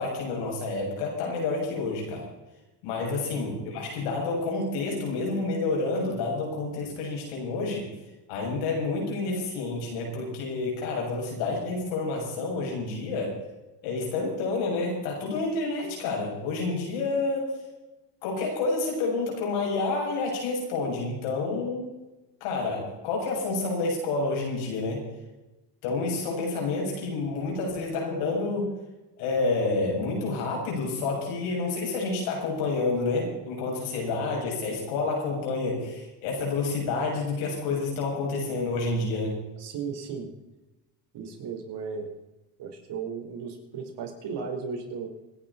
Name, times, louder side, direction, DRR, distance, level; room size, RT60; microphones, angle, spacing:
voice 1, 0.0-2.3 2.8-7.8 8.3-13.4 13.8-17.5 18.2-21.8 22.4-25.0 25.8-28.7 29.2-39.4, left 3 dB, 85° left, -1 dB, 7.8 m, -29 dB
voice 2, 39.6-40.3 41.1-42.1 42.6-45.1, right 5 dB, 60° right, 3 dB, 4.8 m, -35 dB
26.5 x 11.0 x 4.4 m, 1.0 s
supercardioid pair, 100°, 47 cm